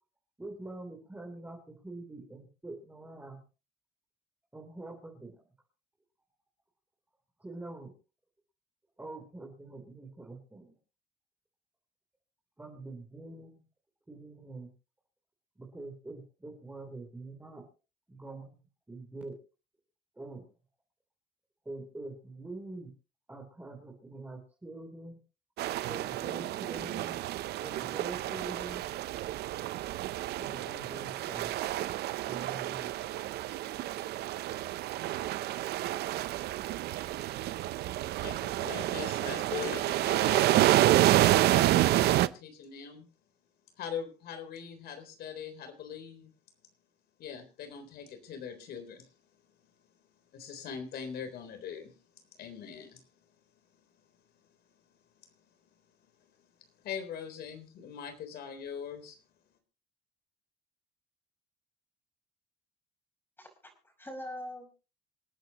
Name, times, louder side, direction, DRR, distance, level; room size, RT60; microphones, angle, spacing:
voice 1, 0.4-3.4 4.5-5.4 7.4-7.9 9.0-10.8 12.6-13.6 14.1-14.7 15.6-17.7 18.1-19.4 20.2-20.4 21.7-22.9 23.3-25.2 25.9-27.2 27.6-28.8 30.4-31.5 32.2-32.9, right 2 dB, 10° right, 0 dB, 3.5 m, -45 dB
sound 1, 25.6-42.3, right 15 dB, 75° right, 0.7 m, -29 dB
voice 2, 38.2-40.7 41.1-43.1 43.8-46.3 47.2-49.1 50.3-51.9 52.4-53.0 56.8-59.2, left 7 dB, 70° left, 8 dB, 3.8 m, -41 dB
voice 3, 63.4-64.7, left 1 dB, 10° left, 2 dB, 5.5 m, -43 dB
27.0 x 9.2 x 3.0 m, 0.33 s
cardioid pair, 110°, 17 cm